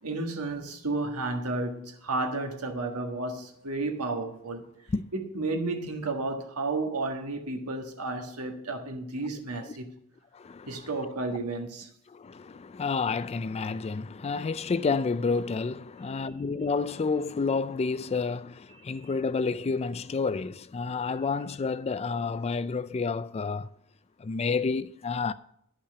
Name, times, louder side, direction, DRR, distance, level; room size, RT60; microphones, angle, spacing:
voice 1, 0.0-4.6 5.1-9.9 10.7-11.9, right 2 dB, 80° right, 1.5 m, -32 dB
voice 2, 10.3-10.9 12.1-23.7 24.2-25.3, left 4 dB, 30° left, 0.3 m, -30 dB
10.5 x 5.6 x 6.8 m
head